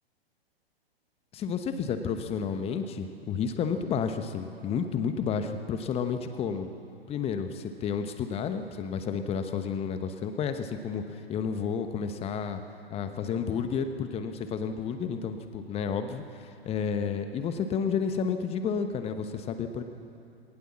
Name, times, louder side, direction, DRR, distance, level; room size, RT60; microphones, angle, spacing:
voice 1, 1.3-6.7 7.1-12.6 12.9-19.8, left 6 dB, 20° left, 8 dB, 1.1 m, -31 dB
19.0 x 19.0 x 7.4 m, 2.6 s
figure-of-eight pair, 110°, 31 cm